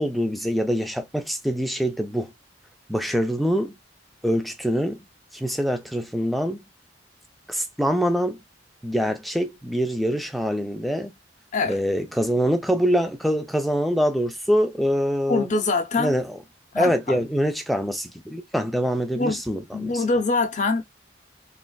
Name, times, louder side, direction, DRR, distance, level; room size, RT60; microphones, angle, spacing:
voice 1, 0.0-2.3 2.9-3.8 4.2-5.1 5.3-6.7 7.5-8.4 8.8-11.1 11.7-15.5 16.0-16.4 16.8-20.0, equal, ahead, 0.4 m, -24 dB
voice 2, 15.3-16.2 16.7-17.2 19.1-19.4 19.7-20.8, left 3 dB, 40° left, 0.7 m, -24 dB
3.1 x 2.4 x 2.2 m
head